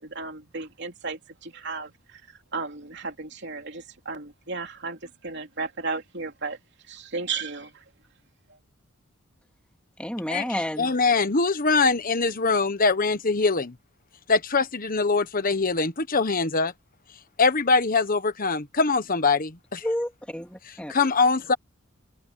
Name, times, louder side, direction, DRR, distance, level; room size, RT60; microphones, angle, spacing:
voice 1, 0.0-6.6 6.9-7.8 8.5-8.6, right 4 dB, 55° right, 3.1 m, -34 dB
voice 2, 10.0-10.9 19.8-20.9, left 1 dB, 5° left, 2.7 m, -30 dB
voice 3, 10.8-13.7 14.3-16.7 17.4-19.8 20.9-21.5, left 4 dB, 45° left, 1.3 m, -23 dB
open air
head